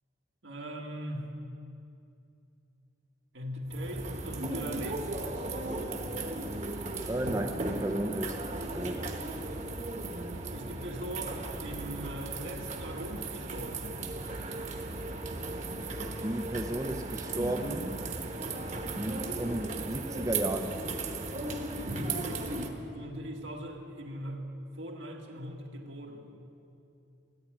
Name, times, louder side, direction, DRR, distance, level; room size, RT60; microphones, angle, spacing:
voice 1, 0.4-1.4 3.3-6.0 10.5-14.0 22.2-24.4 24.7-26.3, equal, 85° right, 0 dB, 1.9 m, -40 dB
sound 1, 3.7-22.7, right 2 dB, 40° right, 1.1 m, -36 dB
voice 2, 7.1-8.4 8.7-9.1 16.2-18.0 19.0-20.8, right 1 dB, 15° right, 5 dB, 0.5 m, -34 dB
14.5 x 10.0 x 9.1 m, 2.7 s
head